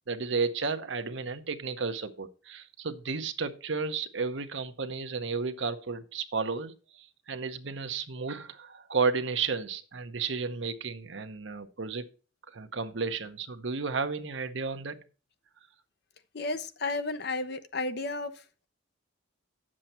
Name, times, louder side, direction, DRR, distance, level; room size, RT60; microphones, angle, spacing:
voice 1, 0.1-12.0 12.5-15.0, right 4 dB, 65° right, 9 dB, 0.9 m, -33 dB
voice 2, 16.3-18.3, left 3 dB, 55° left, 10 dB, 0.8 m, -32 dB
9.0 x 7.5 x 4.3 m, 0.35 s
head